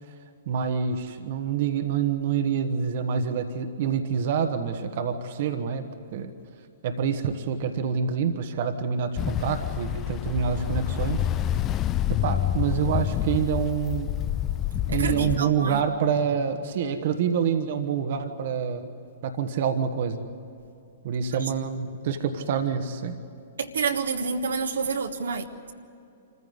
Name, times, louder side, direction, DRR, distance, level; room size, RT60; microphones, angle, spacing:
voice 1, 0.5-5.8 6.1-6.3 6.8-11.2 12.1-14.1 14.9-18.9 19.2-20.2 21.0-23.2, right 7 dB, 50° right, 1.4 m, -27 dB
Ocean, 9.2-15.4, left 11 dB, 25° left, 0.6 m, -27 dB
voice 2, 14.9-15.8 21.3-21.5 23.6-25.7, right 5 dB, 70° right, 1.5 m, -29 dB
26.5 x 15.0 x 9.7 m
figure-of-eight pair, 110°, 0 cm